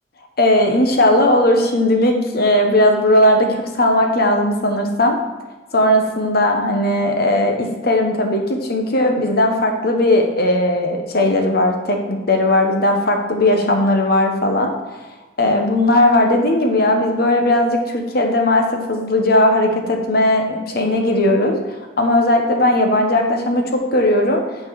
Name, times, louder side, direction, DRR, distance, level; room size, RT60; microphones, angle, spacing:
voice 1, 0.4-5.2 5.7-14.7 15.4-21.6 22.0-24.4, left 1 dB, 55° left, 3 dB, 1.1 m, -17 dB
8.7 x 4.5 x 4.7 m, 1.2 s
head